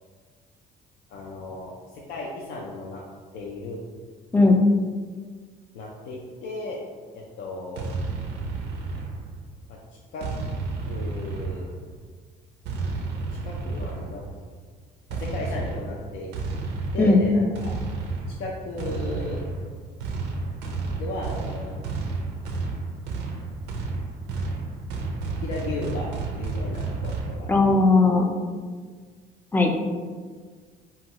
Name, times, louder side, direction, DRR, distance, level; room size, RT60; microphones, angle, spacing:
voice 1, 1.1-3.0 3.3-3.8 5.7-6.8 7.1-7.8 9.7-9.8 10.1-10.3 10.9-11.7 13.1-14.3 15.1-16.3 16.9-17.7 18.4-19.5 21.0-21.8 25.4-27.5, left 2 dB, 70° left, -3 dB, 0.4 m, -35 dB
sound 1, 7.8-9.5 10.2-11.9 12.7-14.3 15.1-27.4, right 3 dB, 90° right, 0.4 m, -31 dB
voice 2, 27.5-28.3 29.5-29.7, left 3 dB, 10° left, 2 dB, 0.3 m, -17 dB
2.6 x 2.3 x 2.9 m, 1.5 s
cardioid pair, 110°, 17 cm